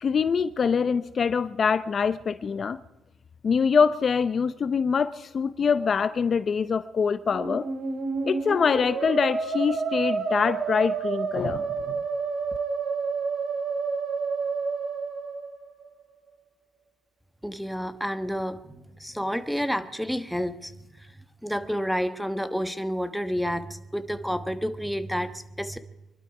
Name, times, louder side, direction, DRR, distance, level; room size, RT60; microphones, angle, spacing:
voice 1, 0.0-2.8 3.4-7.7 8.2-12.0, left 6 dB, 45° left, 14 dB, 0.6 m, -24 dB
Musical instrument, 7.2-16.0, right 5 dB, 65° right, 3.0 m, -29 dB
voice 2, 17.4-20.7 21.0-21.1 21.4-25.8, equal, ahead, 11 dB, 1.2 m, -30 dB
25.0 x 12.0 x 4.8 m, 1.0 s
cardioid pair, 90°, 0 cm